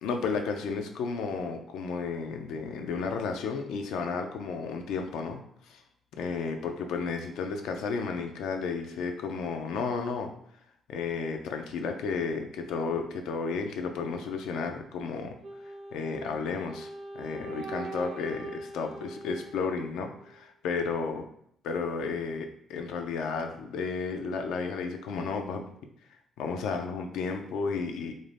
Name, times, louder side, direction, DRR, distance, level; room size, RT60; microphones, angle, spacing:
voice 1, 0.0-5.4 5.7-5.8 6.2-10.3 10.9-15.3 15.9-16.9 17.1-21.2 21.6-25.7 26.4-28.1, left 5 dB, 85° left, 4 dB, 0.3 m, -32 dB
Wind instrument woodwind instrument, 15.4-20.5, right 2 dB, 65° right, 0.4 m, -42 dB
2.5 x 2.1 x 3.2 m, 0.70 s
cardioid pair, 90°, 0 cm